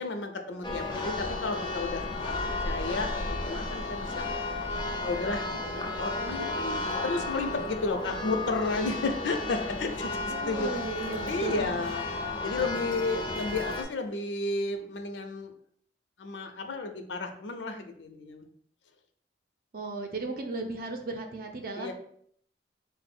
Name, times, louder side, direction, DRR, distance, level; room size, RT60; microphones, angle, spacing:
voice 1, 0.0-4.3 5.0-10.8 11.3-12.0 12.4-15.5 16.2-18.5 21.8-21.9, left 3 dB, 85° left, 6 dB, 0.5 m, -33 dB
Church bell, 0.6-13.8, left 2 dB, 25° left, 0.4 m, -33 dB
voice 2, 10.3-11.7 19.7-21.9, right 3 dB, 55° right, 4 dB, 0.6 m, -36 dB
3.8 x 2.0 x 4.2 m, 0.64 s
head